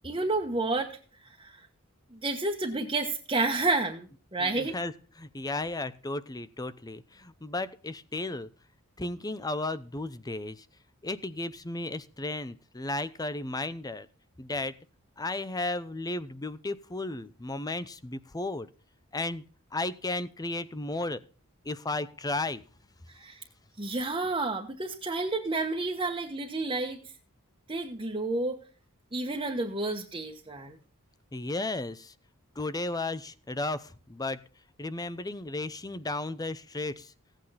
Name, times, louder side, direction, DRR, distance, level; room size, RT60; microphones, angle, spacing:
voice 1, 0.0-1.7 2.1-4.8 23.1-23.4 23.8-27.0 27.7-28.6 29.1-30.8, right 3 dB, 25° right, -1 dB, 1.3 m, -30 dB
voice 2, 4.4-4.9 5.2-8.5 9.0-10.6 11.0-14.1 14.4-14.7 15.2-18.7 19.1-19.4 19.7-21.2 21.6-22.6 31.3-32.1 32.6-34.4 34.8-37.1, left 2 dB, 15° left, 15 dB, 0.7 m, -34 dB
16.5 x 9.0 x 4.2 m, 0.40 s
head